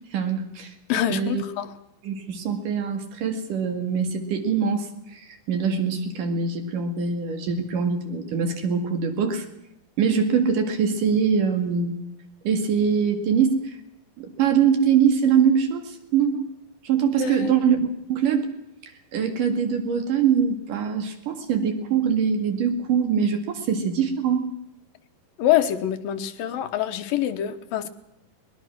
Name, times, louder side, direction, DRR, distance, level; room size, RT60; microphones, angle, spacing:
voice 1, 0.1-0.7 1.1-1.4 2.0-9.5 10.0-12.0 12.5-13.8 14.2-16.5 16.8-18.5 19.1-24.5, right 6 dB, 65° right, 6 dB, 3.6 m, -23 dB
voice 2, 0.9-1.7 17.2-17.5 25.4-27.9, left 11 dB, 80° left, 9 dB, 2.9 m, -25 dB
21.5 x 21.0 x 6.1 m, 0.84 s
omnidirectional pair, 4.1 m